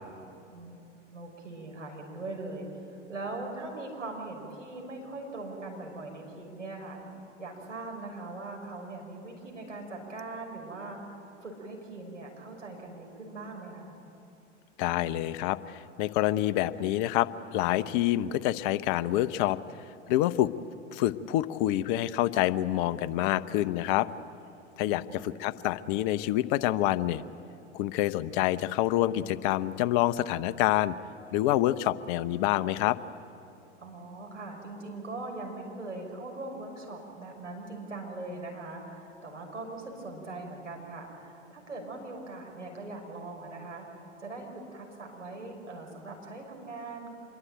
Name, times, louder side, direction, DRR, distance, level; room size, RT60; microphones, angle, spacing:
voice 1, 0.5-0.8 1.1-7.0 7.4-13.9 24.8-25.3 33.8-47.1, right 2 dB, 90° right, 0 dB, 6.0 m, -41 dB
voice 2, 14.8-19.6 20.1-20.5 20.9-24.1 24.8-27.2 27.7-30.9 31.3-33.0, left 14 dB, 45° left, 14 dB, 0.9 m, -27 dB
26.5 x 22.5 x 9.1 m, 2.7 s
figure-of-eight pair, 95°, 36 cm